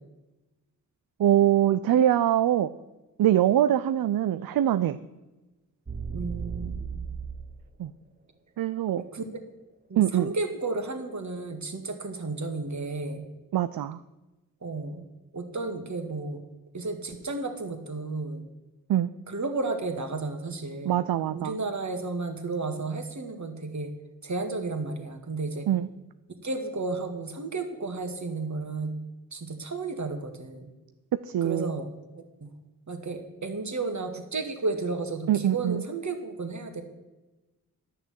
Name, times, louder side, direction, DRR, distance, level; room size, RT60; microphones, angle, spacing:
voice 1, 1.2-2.7 3.2-5.0 7.8-7.9 8.6-9.0 10.0-10.3 13.5-14.0 18.9-19.1 20.8-21.6 25.7-25.9 31.2-31.7 35.3-35.8, right 11 dB, 65° right, 13 dB, 0.5 m, -23 dB
sound 1, 5.9-7.6, right 5 dB, 25° right, 1.1 m, -35 dB
voice 2, 6.1-6.8 8.9-9.3 9.9-13.3 14.6-15.0 15.3-16.4 16.7-18.4 19.3-23.9 24.2-25.7 26.4-28.9 29.3-30.7 31.4-31.9 32.1-32.5 32.9-36.8, right 3 dB, 45° right, 5 dB, 2.0 m, -33 dB
10.5 x 6.6 x 7.5 m, 1.1 s
cardioid pair, 45°, 38 cm